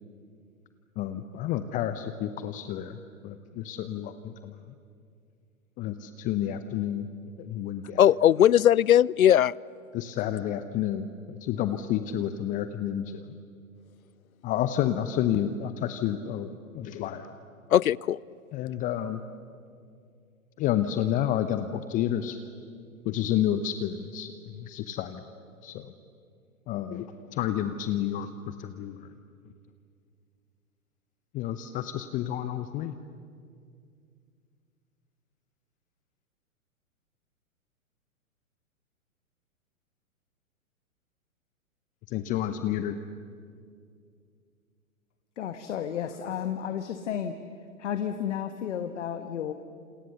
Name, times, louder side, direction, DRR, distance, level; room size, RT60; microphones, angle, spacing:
voice 1, 1.0-4.7 5.8-7.1 7.4-8.0 9.9-13.3 14.4-17.3 18.5-19.2 20.6-22.4 23.0-25.2 25.6-25.9 26.7-27.1 27.3-29.1 31.3-33.0 42.1-43.0, left 11 dB, 20° left, 0.7 m, -30 dB
voice 2, 8.0-9.6 17.7-18.2, left 11 dB, 75° left, 0.6 m, -19 dB
voice 3, 45.4-47.3 47.8-49.5, left 9 dB, 55° left, 1.5 m, -32 dB
29.0 x 27.5 x 7.0 m
figure-of-eight pair, 115°, 42 cm